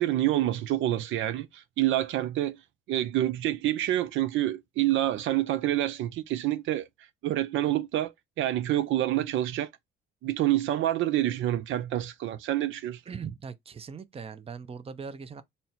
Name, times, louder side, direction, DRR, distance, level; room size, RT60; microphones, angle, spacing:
voice 1, 0.0-2.6 2.9-6.9 7.2-8.1 8.4-9.7 10.2-13.0, right 13 dB, 80° right, 0.4 m, -27 dB
voice 2, 13.1-15.4, right 6 dB, 30° right, 0.5 m, -40 dB
4.2 x 2.1 x 4.2 m
cardioid pair, 90°, 20 cm